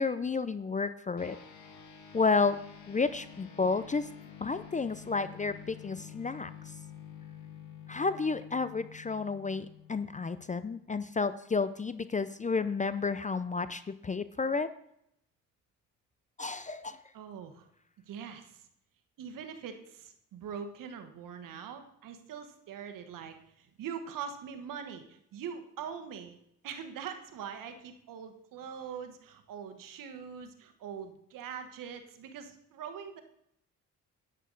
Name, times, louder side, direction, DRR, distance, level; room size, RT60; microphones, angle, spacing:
voice 1, 0.0-1.4 2.1-2.6 2.9-4.1 4.4-6.5 7.9-14.7 16.4-17.0, left 4 dB, 25° left, 13 dB, 0.5 m, -31 dB
sound 1, 1.2-10.9, left 8 dB, 65° left, 1.9 m, -49 dB
voice 2, 17.1-17.7 18.1-18.7 19.2-26.4 26.6-33.2, right 7 dB, 80° right, 7 dB, 1.3 m, -43 dB
11.0 x 9.0 x 3.9 m, 0.74 s
cardioid pair, 70°, 32 cm